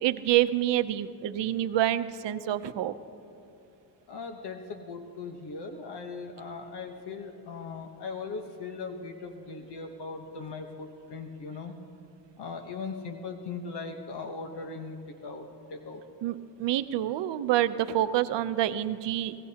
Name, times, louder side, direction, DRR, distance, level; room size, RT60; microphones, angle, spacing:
voice 1, 0.0-2.9 16.2-19.4, right 13 dB, 85° right, 12 dB, 0.7 m, -27 dB
voice 2, 4.1-11.7 12.4-16.0, left 4 dB, 70° left, 4 dB, 1.1 m, -39 dB
26.5 x 18.0 x 2.9 m, 2.6 s
cardioid pair, 115°, 41 cm